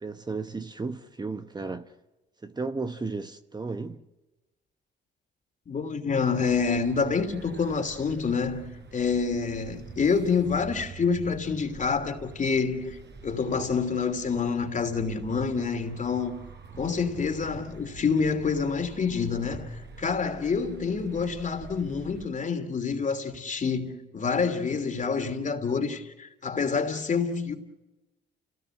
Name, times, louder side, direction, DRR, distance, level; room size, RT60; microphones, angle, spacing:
voice 1, 0.0-1.9 2.4-4.0, right 3 dB, 20° right, 1.0 m, -34 dB
voice 2, 5.7-16.4 16.8-27.5, left 5 dB, 40° left, 2.9 m, -27 dB
sound 1, 6.4-22.3, right 5 dB, 60° right, 4.9 m, -46 dB
29.5 x 18.0 x 7.8 m
cardioid pair, 90°, 20 cm